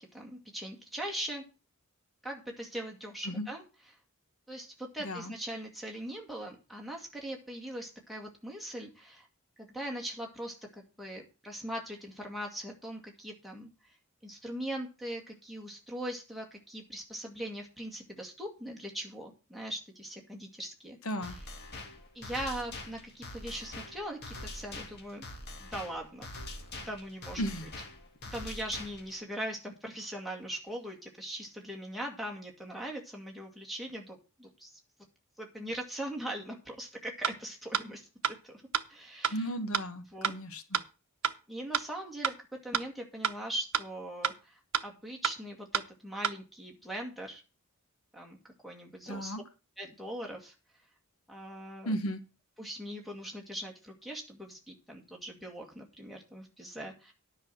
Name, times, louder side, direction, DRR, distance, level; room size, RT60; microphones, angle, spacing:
voice 1, 0.0-1.4 2.2-3.6 3.9-4.0 4.5-9.3 9.6-14.0 14.2-21.4 22.1-25.2 25.6-26.3 26.9-27.5 28.3-34.8 35.4-38.6 38.9-39.5 40.1-40.3 41.5-42.3 42.6-47.4 48.1-48.4 48.6-49.4 49.8-50.5 51.3-52.0 52.6-57.1, right 1 dB, ahead, 1 dB, 2.1 m, -41 dB
voice 2, 21.0-21.3 27.4-27.7 39.3-40.8 49.1-49.4 51.8-52.2, equal, 70° left, 9 dB, 1.3 m, -35 dB
sound 1, 21.2-29.2, left 2 dB, 45° left, 2.0 m, -44 dB
sound 2, 37.2-37.3 37.7-37.8 38.2-38.3 38.7-38.8 39.2-39.3 39.7-39.8 40.2-40.3 40.7-40.8 41.2-41.3 41.7-41.8 42.2-42.3 42.7-42.8 43.2-43.3 43.7-43.8 44.2-44.3 44.7-44.8 45.2-45.3 45.7-45.8 46.2-46.3, right 8 dB, 70° right, 0.8 m, -28 dB
10.0 x 5.8 x 7.7 m, 0.32 s
head